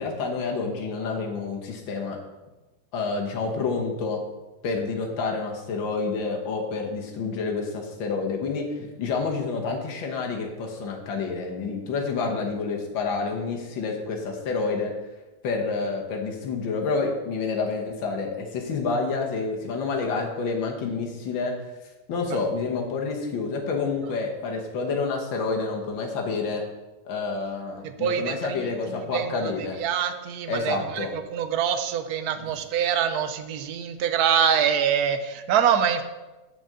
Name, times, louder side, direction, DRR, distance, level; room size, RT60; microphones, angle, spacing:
voice 1, 0.0-2.2 2.9-4.2 4.6-14.9 15.4-21.5 22.1-26.6 27.1-29.8 30.5-31.1 32.4-32.5, left 4 dB, 80° left, 1 dB, 1.9 m, -28 dB
voice 2, 28.0-36.0, right 8 dB, 65° right, 9 dB, 1.0 m, -25 dB
6.2 x 5.1 x 6.7 m, 1.1 s
omnidirectional pair, 2.0 m